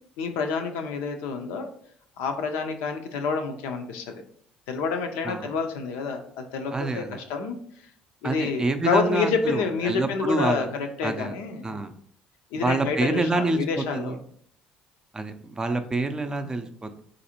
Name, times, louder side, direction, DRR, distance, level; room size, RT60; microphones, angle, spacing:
voice 1, 0.2-1.7 2.2-4.2 4.7-7.6 8.2-11.8 12.5-14.2 16.3-16.5, left 5 dB, 80° left, 5 dB, 0.5 m, -28 dB
voice 2, 6.7-7.2 8.2-10.7 11.0-11.3 11.6-11.9 12.6-14.2 15.1-17.0, right 2 dB, 20° right, 7 dB, 0.4 m, -27 dB
4.0 x 2.6 x 2.8 m, 0.63 s
hypercardioid pair, 65°, 3 cm